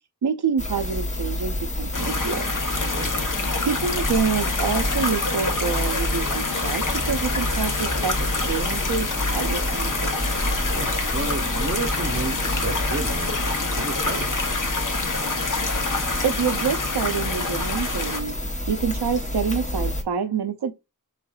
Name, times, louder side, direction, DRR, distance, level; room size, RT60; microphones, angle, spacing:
voice 1, 0.2-2.5 3.6-8.2 8.5-9.1 9.3-10.2 16.2-18.4 18.7-20.7, right 6 dB, 90° right, 0.6 m, -27 dB
sound 1, 0.6-20.0, left 1 dB, 20° left, 0.7 m, -29 dB
sound 2, 1.9-18.2, left 3 dB, 55° left, 0.7 m, -27 dB
voice 2, 10.7-14.6, right 3 dB, 40° right, 0.6 m, -32 dB
3.5 x 3.3 x 2.2 m
wide cardioid pair, 40°, 38 cm